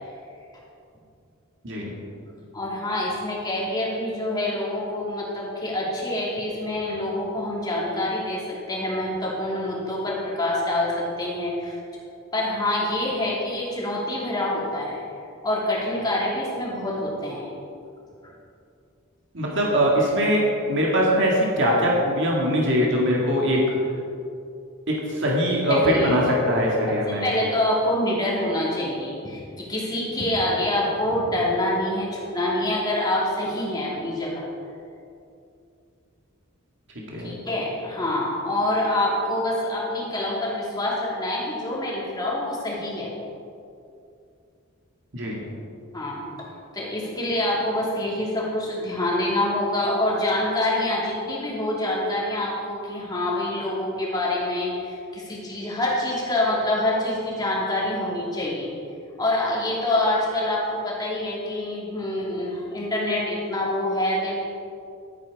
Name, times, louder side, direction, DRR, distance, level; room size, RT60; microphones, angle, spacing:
voice 1, 2.5-11.8 12.3-15.0 15.4-17.5 18.2-18.3 25.7-26.5 26.9-34.5 37.2-43.1 45.9-46.5 46.7-58.7 59.2-64.4, left 1 dB, 20° left, -5 dB, 2.7 m, -26 dB
voice 2, 19.3-20.4 20.7-23.6 24.9-27.2 37.1-37.4 45.1-45.4, equal, 60° right, -3 dB, 2.1 m, -22 dB
12.5 x 8.9 x 4.8 m, 2.5 s
head